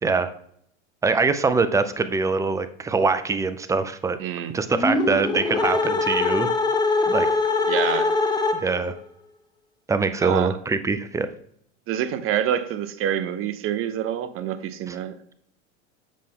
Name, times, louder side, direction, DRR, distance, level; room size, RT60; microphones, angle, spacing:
voice 1, 0.0-0.3 1.0-4.2 4.5-6.5 7.1-7.3 8.6-8.9 9.9-11.3 14.9-15.0, right 4 dB, 10° right, 0.4 m, -23 dB
voice 2, 4.2-4.6 7.7-8.1 10.2-10.6 11.9-15.2, right 10 dB, 35° right, 0.8 m, -27 dB
sound 1, 4.7-8.9, left 3 dB, 10° left, 0.9 m, -23 dB
7.5 x 5.6 x 3.6 m
hypercardioid pair, 105°, 36 cm